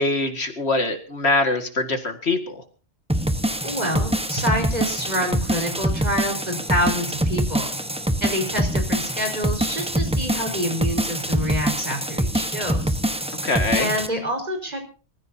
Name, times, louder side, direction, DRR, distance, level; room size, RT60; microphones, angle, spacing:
voice 1, 0.0-2.6 13.4-13.9, left 2 dB, 65° left, 6 dB, 2.4 m, -23 dB
sound 1, 3.1-14.1, right 1 dB, 5° right, 1.1 m, -25 dB
voice 2, 3.6-7.7 8.2-13.0 13.7-14.8, equal, 35° right, 2 dB, 5.1 m, -27 dB
26.0 x 15.0 x 2.8 m, 0.37 s
omnidirectional pair, 1.2 m